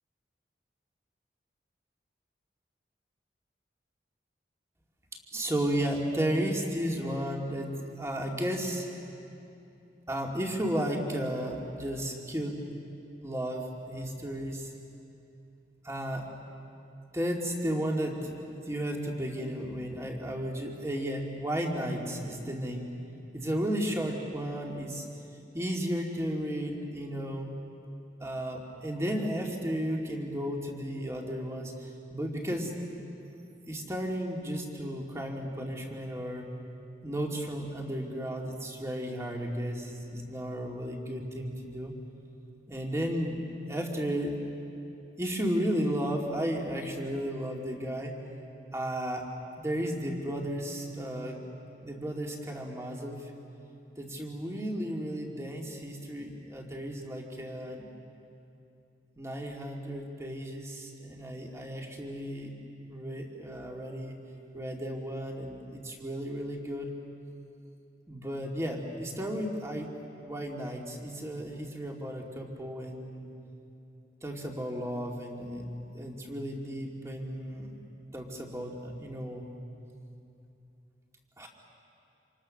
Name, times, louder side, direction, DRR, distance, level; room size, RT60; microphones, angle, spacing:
voice 1, 5.3-8.9 10.1-12.6 13.2-14.7 15.8-16.2 17.1-18.3 18.7-22.9 23.3-25.1 25.5-27.5 28.2-33.0 33.7-36.5 37.0-42.0 42.7-43.4 43.7-44.4 45.2-48.2 48.7-49.3 49.6-51.4 51.8-53.3 54.0-57.9 59.2-62.5 62.9-64.2 64.5-66.9 68.1-69.9 70.2-73.3 74.2-75.7 75.9-77.7 78.1-79.5 81.4-81.5, equal, 15° right, 0 dB, 2.5 m, -34 dB
28.0 x 27.0 x 6.6 m, 2.7 s
head